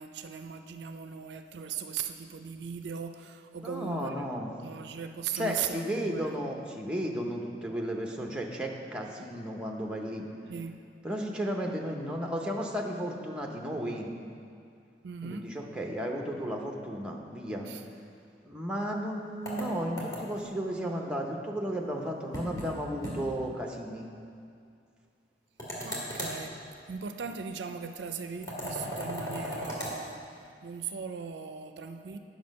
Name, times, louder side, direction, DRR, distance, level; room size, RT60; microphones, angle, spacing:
voice 1, 0.0-4.4 4.6-6.5 10.5-10.8 15.0-15.5 17.7-17.8 25.8-26.6 26.9-30.3 30.6-32.2, right 6 dB, 70° right, 7 dB, 0.4 m, -38 dB
voice 2, 3.6-4.5 5.3-10.3 11.0-14.1 15.2-17.7 18.4-24.1, equal, 5° right, 1 dB, 0.7 m, -34 dB
sound 1, 19.5-20.5 22.3-22.7 23.0-23.2 23.5-23.6 25.6-26.4 28.4-30.0, equal, 20° left, 1.9 m, -36 dB
9.4 x 6.2 x 5.3 m, 2.4 s
head